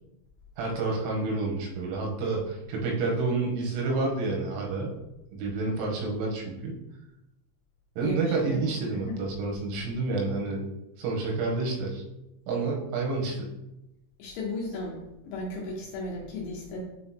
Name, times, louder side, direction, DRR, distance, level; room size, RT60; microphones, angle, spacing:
voice 1, 0.6-4.9 5.3-6.8 8.0-10.7 11.0-12.0 12.5-13.5, right 3 dB, 90° right, -1 dB, 3.5 m, -29 dB
voice 2, 8.0-8.6 8.9-9.2 14.2-16.8, left 2 dB, 75° left, -3 dB, 2.6 m, -35 dB
8.6 x 3.8 x 2.9 m, 0.92 s
omnidirectional pair, 5.7 m